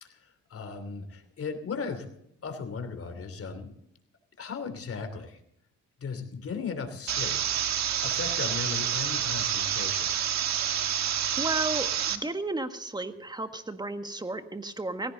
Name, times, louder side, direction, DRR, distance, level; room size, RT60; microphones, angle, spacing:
voice 1, 0.0-2.1 2.4-3.7 4.4-5.4 6.0-7.4 7.7-10.1, left 5 dB, 50° left, 8 dB, 3.0 m, -37 dB
sound 1, 7.1-12.2, right 9 dB, 65° right, 1.4 m, -28 dB
voice 2, 11.4-15.1, right 2 dB, 15° right, 8 dB, 1.6 m, -33 dB
18.0 x 16.0 x 4.0 m, 0.73 s
cardioid pair, 90°, 30 cm